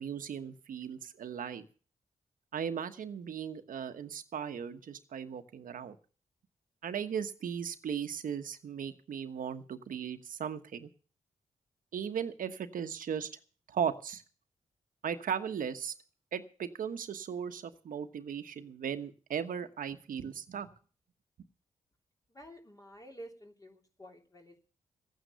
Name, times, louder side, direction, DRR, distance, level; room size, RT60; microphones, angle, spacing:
voice 1, 0.0-1.6 2.5-6.0 6.8-10.9 11.9-13.3 13.7-14.2 15.0-15.9 16.3-20.7, right 8 dB, 80° right, 9 dB, 1.3 m, -37 dB
voice 2, 22.3-24.6, equal, 25° left, 2 dB, 3.2 m, -51 dB
13.5 x 9.4 x 6.9 m, 0.41 s
cardioid pair, 70°, 14 cm